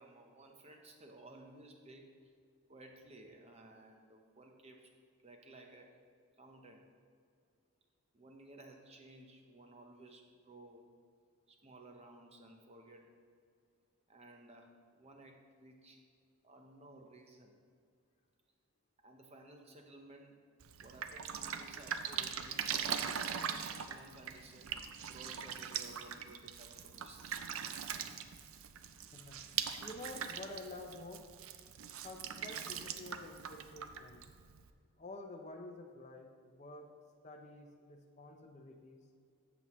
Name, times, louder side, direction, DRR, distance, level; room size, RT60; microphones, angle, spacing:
voice 1, 0.0-2.3 2.7-4.9 5.2-6.0 6.4-6.9 8.1-10.9 11.5-13.2 14.1-16.0 16.4-17.5 19.0-20.4 20.8-23.5 23.8-24.8 25.0-27.4, right 2 dB, 30° right, 3 dB, 0.8 m, -56 dB
Drip, 20.6-34.7, right 8 dB, 65° right, 0.5 m, -41 dB
voice 2, 29.8-31.3 32.0-34.3 35.0-36.9 37.2-39.1, left 2 dB, 30° left, 3 dB, 0.6 m, -49 dB
14.0 x 6.0 x 3.1 m, 2.2 s
head